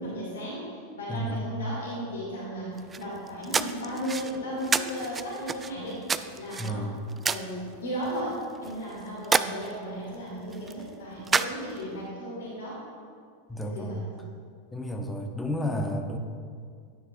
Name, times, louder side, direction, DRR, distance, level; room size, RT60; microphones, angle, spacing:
voice 1, 0.0-6.9 7.2-12.8 13.6-14.1, equal, 60° left, -5 dB, 2.5 m, -35 dB
sound 1, 2.8-12.0, right 5 dB, 15° right, 0.3 m, -32 dB
voice 2, 6.6-7.0 13.5-14.0 14.7-16.2, equal, 5° left, 4 dB, 0.9 m, -31 dB
11.0 x 9.6 x 2.6 m, 2.1 s
figure-of-eight pair, 90°, 0 cm